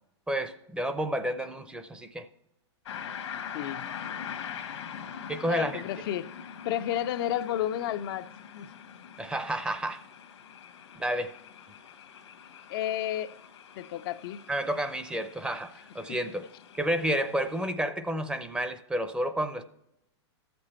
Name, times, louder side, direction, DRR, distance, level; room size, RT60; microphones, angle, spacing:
voice 1, 0.3-2.3 5.3-5.8 9.2-10.0 10.9-11.3 14.5-16.5 16.7-19.6, right 1 dB, 5° right, 0.6 m, -30 dB
sound 1, 2.9-17.7, left 8 dB, 80° left, 1.2 m, -43 dB
voice 2, 3.5-3.9 5.5-8.3 8.5-8.7 12.7-13.3 13.8-14.4, left 12 dB, 55° left, 0.4 m, -32 dB
13.0 x 6.8 x 4.3 m
hypercardioid pair, 125°, 15 cm